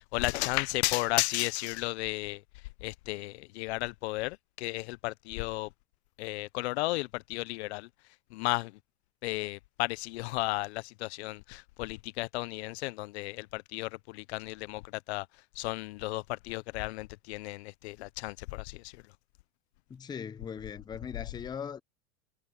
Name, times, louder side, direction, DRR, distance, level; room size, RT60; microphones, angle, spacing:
voice 1, 0.0-2.4 2.8-5.7 6.2-7.9 8.3-8.8 9.2-15.3 15.6-19.0, left 21 dB, 65° left, 0.7 m, -34 dB
voice 2, 19.9-21.8, left 7 dB, 10° left, 0.5 m, -39 dB
supercardioid pair, 125°, 35 cm